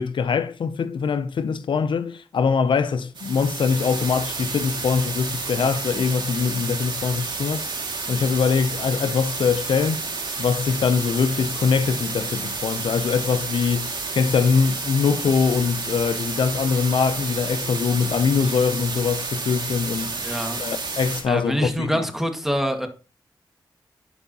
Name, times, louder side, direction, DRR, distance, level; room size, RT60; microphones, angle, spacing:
voice 1, 0.0-7.7 8.1-10.1 10.4-20.2 20.6-22.1, left 6 dB, 75° left, 0.5 m, -23 dB
sound 1, 3.1-21.2, right 4 dB, 65° right, 2.0 m, -30 dB
voice 2, 20.1-20.6 21.3-22.9, equal, 5° right, 1.7 m, -25 dB
11.0 x 4.6 x 2.8 m
cardioid pair, 40°, 8 cm